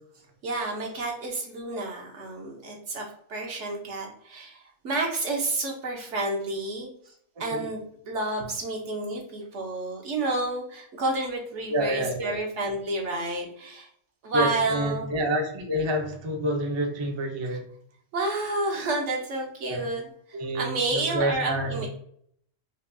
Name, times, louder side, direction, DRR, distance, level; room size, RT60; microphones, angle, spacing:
voice 1, 0.4-6.9 7.4-13.9 14.2-15.1 18.1-21.9, right 2 dB, 70° right, 0 dB, 1.2 m, -30 dB
voice 2, 11.7-12.4 14.3-17.7 19.6-19.8 20.3-21.9, right 1 dB, 35° right, 2 dB, 0.5 m, -28 dB
5.0 x 2.2 x 2.6 m, 0.64 s
omnidirectional pair, 1.3 m